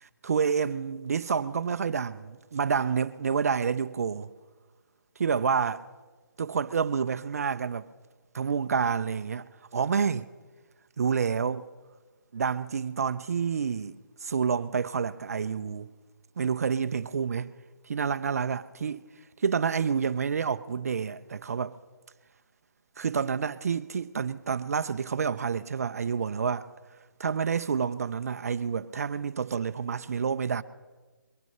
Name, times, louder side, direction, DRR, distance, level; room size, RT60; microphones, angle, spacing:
voice 1, 0.0-4.3 5.2-5.8 6.4-7.9 8.3-10.3 11.0-11.6 12.3-15.9 16.4-17.5 17.9-19.0 19.4-21.7 23.0-26.7 27.2-30.6, right 6 dB, 45° right, 0.4 m, -28 dB
22.5 x 9.3 x 5.4 m
hypercardioid pair, 170°, 11 cm